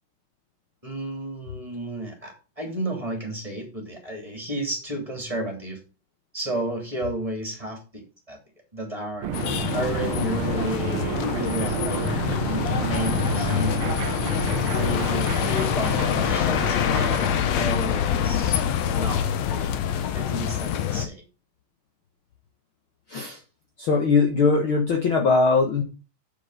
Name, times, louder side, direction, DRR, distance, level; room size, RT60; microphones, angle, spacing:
voice 1, 0.8-5.8 6.3-8.4 8.7-9.3 9.7-13.8 14.7-17.0 17.5-18.6 18.9-19.8 20.1-21.2, right 1 dB, 10° right, 1 dB, 3.0 m, -32 dB
sound 1, 9.2-17.5, right 9 dB, 75° right, 1.3 m, -31 dB
sound 2, 9.3-21.1, left 9 dB, 70° left, 2.0 m, -25 dB
voice 2, 23.8-25.8, left 4 dB, 50° left, 2 dB, 1.8 m, -20 dB
7.9 x 6.9 x 5.7 m, 0.33 s
omnidirectional pair, 3.4 m